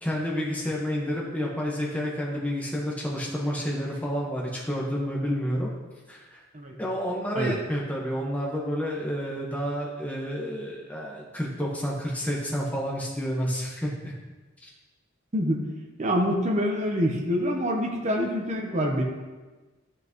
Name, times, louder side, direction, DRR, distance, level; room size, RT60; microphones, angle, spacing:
voice 1, 0.0-5.7 6.1-6.4 6.8-14.1 14.6-14.7, equal, 10° left, -4 dB, 1.3 m, -30 dB
voice 2, 16.0-19.0, equal, 35° right, 0 dB, 1.0 m, -26 dB
13.0 x 5.9 x 3.1 m, 1.2 s
head